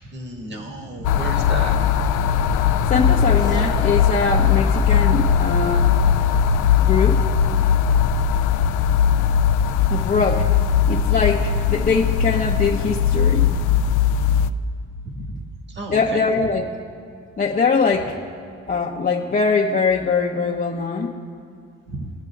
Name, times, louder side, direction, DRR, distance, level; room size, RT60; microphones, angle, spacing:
voice 1, 0.0-1.8 15.0-15.4 15.7-16.2 21.9-22.1, right 2 dB, 35° right, 2 dB, 1.6 m, -32 dB
sound 1, 1.0-14.5, left 7 dB, 80° left, 0.5 m, -19 dB
voice 2, 2.9-5.9 6.8-7.2 9.9-10.5 10.9-13.5 15.9-16.7 17.4-18.2 18.7-21.1, left 5 dB, 30° left, -2 dB, 0.7 m, -22 dB
sound 2, 3.4-7.8, right 2 dB, 15° right, 1.0 m, -38 dB
23.0 x 8.0 x 2.4 m, 2.4 s
cardioid pair, 90°, 30 cm